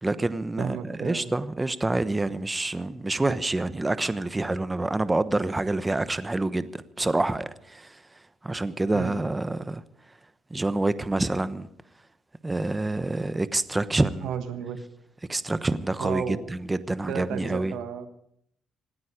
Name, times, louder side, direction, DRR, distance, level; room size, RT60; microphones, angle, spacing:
voice 1, 0.0-8.0 8.4-9.8 10.5-11.7 12.4-14.3 15.3-17.7, right 2 dB, 15° right, 1.0 m, -27 dB
voice 2, 0.6-1.3 8.9-9.2 14.2-14.8 16.0-16.4 17.1-18.1, right 8 dB, 80° right, 1.4 m, -33 dB
26.0 x 9.4 x 5.1 m
supercardioid pair, 75°, 0 cm